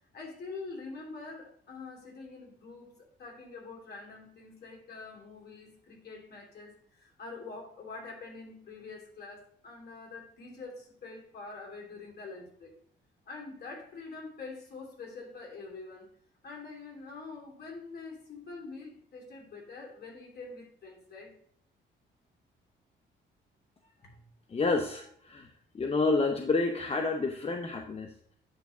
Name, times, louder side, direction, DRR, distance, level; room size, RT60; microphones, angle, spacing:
voice 1, 0.1-2.9 3.2-12.7 13.3-16.1 16.4-21.3 24.0-24.3, left 3 dB, 55° left, 0 dB, 3.1 m, -45 dB
voice 2, 24.5-25.5 25.7-28.4, left 3 dB, 30° left, 4 dB, 0.8 m, -29 dB
9.5 x 3.6 x 6.1 m, 0.63 s
cardioid pair, 90°, 20 cm